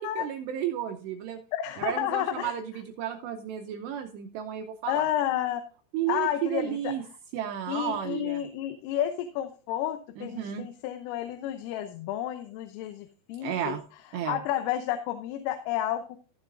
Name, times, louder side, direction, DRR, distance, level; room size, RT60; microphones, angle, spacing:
voice 1, 0.0-1.4 1.8-5.0 5.9-7.0 7.3-8.4 10.2-10.7 13.4-13.8 14.1-14.4, right 10 dB, 80° right, 6 dB, 2.5 m, -33 dB
voice 2, 1.5-2.5 4.9-5.6 6.1-6.9 7.7-13.8 14.3-16.0, left 12 dB, 90° left, 8 dB, 3.4 m, -31 dB
15.0 x 7.0 x 2.6 m, 0.36 s
omnidirectional pair, 5.7 m